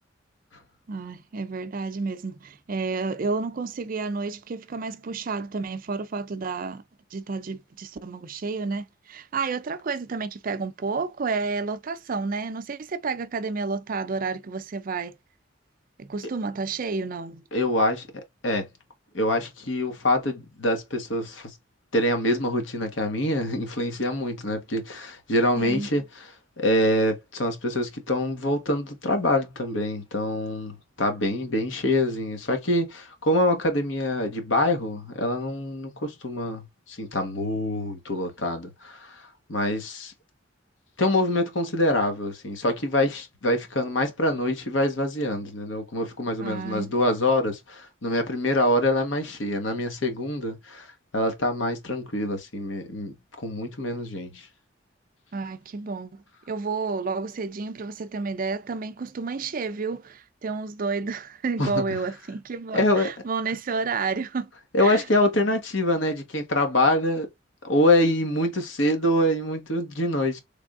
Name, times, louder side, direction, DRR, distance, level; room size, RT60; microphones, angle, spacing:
voice 1, 0.9-6.8 7.1-15.1 16.0-17.4 25.6-25.9 46.4-46.9 55.3-64.5 64.8-65.0, right 4 dB, 45° right, 0.5 m, -30 dB
voice 2, 17.5-18.1 18.4-18.7 19.1-21.5 21.9-26.0 26.6-39.2 39.5-40.1 41.0-50.9 51.1-53.1 53.4-54.4 61.6-61.8 62.7-63.1 64.7-67.3 67.6-70.4, left 1 dB, 80° left, 1.2 m, -25 dB
3.4 x 3.4 x 2.4 m
head